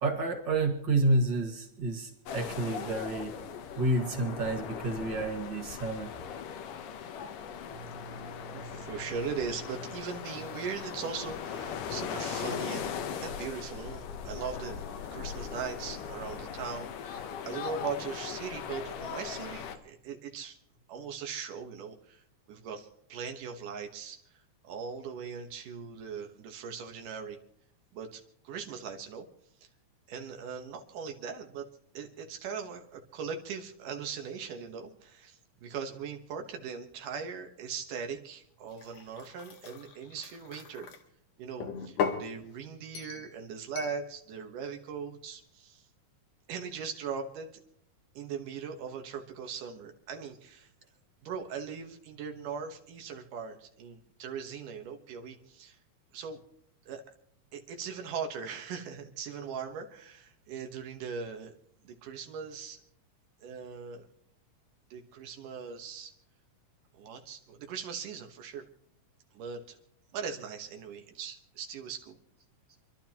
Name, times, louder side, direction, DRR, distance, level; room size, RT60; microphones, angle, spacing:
voice 1, 0.0-3.4 3.8-6.1, right 2 dB, 40° right, 4 dB, 2.1 m, -29 dB
sound 1, 2.3-19.8, left 7 dB, 90° left, 2.7 m, -39 dB
voice 2, 7.7-20.6 20.9-22.2 22.5-24.2 24.6-27.4 27.9-29.3 30.1-31.7 31.9-40.9 41.4-45.8 46.5-47.5 48.1-50.7 51.2-55.8 56.1-56.4 56.9-57.0 57.5-61.5 61.8-62.8 63.4-64.0 64.9-66.1 66.9-68.6 69.3-69.8 70.1-72.2, right 6 dB, 80° right, 4 dB, 2.9 m, -40 dB
sound 2, 38.7-41.0 41.6-42.3 43.0-43.3 43.8-44.0, left 6 dB, 70° left, 2.8 m, -36 dB
28.0 x 12.0 x 3.0 m, 0.70 s
omnidirectional pair, 3.6 m